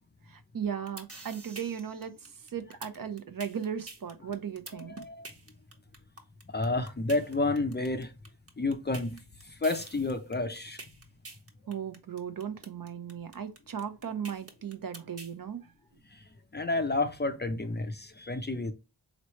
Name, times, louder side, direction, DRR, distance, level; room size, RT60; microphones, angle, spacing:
voice 1, 0.3-5.0 11.7-15.7, right 8 dB, 50° right, 0.7 m, -37 dB
sound 1, 0.6-15.3, right 3 dB, 30° right, 1.2 m, -46 dB
voice 2, 4.7-5.3 6.5-8.1 8.6-10.8 16.1-16.2 16.5-18.7, left 2 dB, 25° left, 0.5 m, -30 dB
4.2 x 3.1 x 3.0 m
wide cardioid pair, 90°, 44 cm